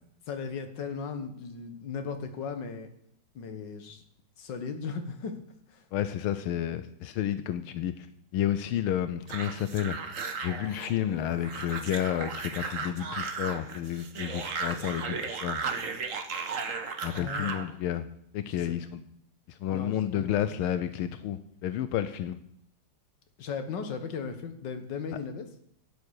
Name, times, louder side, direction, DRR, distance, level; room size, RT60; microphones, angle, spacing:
voice 1, 0.3-2.9 3.4-4.0 4.4-5.3 5.7-5.8 17.1-17.5 18.4-18.7 19.7-20.3 23.4-25.5, left 5 dB, 60° left, 7 dB, 2.0 m, -37 dB
voice 2, 5.9-8.1 8.3-10.1 10.4-15.6 17.0-18.1 18.3-19.0 19.5-22.4, left 11 dB, 85° left, 11 dB, 1.6 m, -31 dB
sound 1, 9.3-17.7, right 5 dB, 45° right, 1.3 m, -35 dB
12.5 x 9.3 x 6.5 m, 0.70 s
omnidirectional pair, 2.3 m